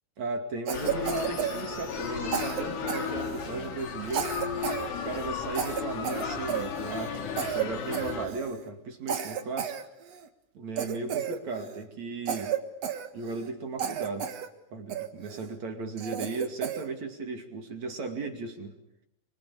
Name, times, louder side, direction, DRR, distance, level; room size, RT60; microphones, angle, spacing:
voice 1, 0.2-4.3 5.0-9.8 10.5-12.5 13.1-14.3 14.7-18.7, right 3 dB, 45° right, 5 dB, 3.0 m, -36 dB
sound 1, 0.7-8.3, left 6 dB, 90° left, 5.9 m, -34 dB
Cough, 0.7-2.1 2.3-3.6 4.1-4.9 5.1-5.3 5.5-7.1 7.4-7.7 7.9-8.6 9.1-10.3 10.8-11.8 12.3-13.5 13.8-14.5 14.9-15.4 16.0-16.9, right 8 dB, 60° right, 1.7 m, -33 dB
26.5 x 25.5 x 8.5 m, 0.82 s
omnidirectional pair, 5.4 m